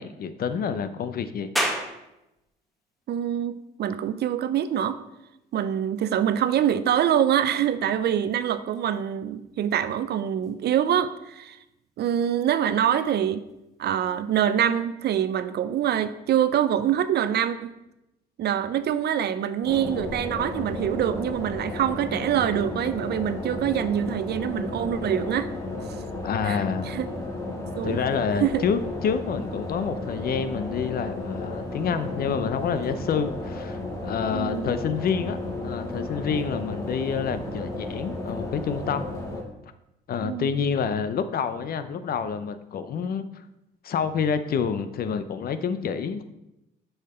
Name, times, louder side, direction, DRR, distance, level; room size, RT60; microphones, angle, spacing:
voice 1, 0.0-1.5 26.2-26.9 27.8-39.1 40.1-43.3 43.8-46.3, left 6 dB, 50° left, 12 dB, 0.6 m, -28 dB
sound 1, 1.6-14.7, equal, ahead, 1.3 m, -40 dB
voice 2, 3.1-5.0 5.5-11.6 12.0-13.4 13.8-17.7 18.4-25.5 26.4-27.1 27.8-28.0 28.4-28.6 34.3-34.7 40.2-40.5, right 10 dB, 60° right, 13 dB, 0.6 m, -25 dB
sound 2, 19.6-39.4, left 2 dB, 15° left, 2.0 m, -33 dB
7.4 x 5.7 x 4.3 m, 0.90 s
cardioid pair, 100°, 19 cm